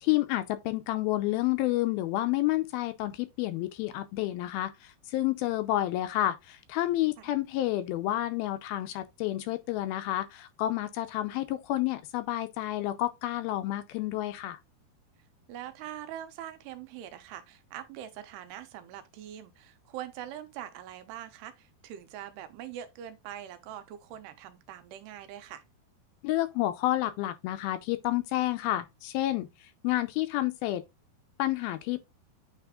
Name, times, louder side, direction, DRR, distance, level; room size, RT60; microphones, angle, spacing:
voice 1, 0.0-14.6 26.2-29.5 29.8-30.8 31.4-32.0, left 15 dB, 80° left, 2.4 m, -30 dB
voice 2, 15.5-25.6, right 11 dB, 90° right, 3.0 m, -43 dB
9.1 x 3.4 x 3.7 m
omnidirectional pair, 4.6 m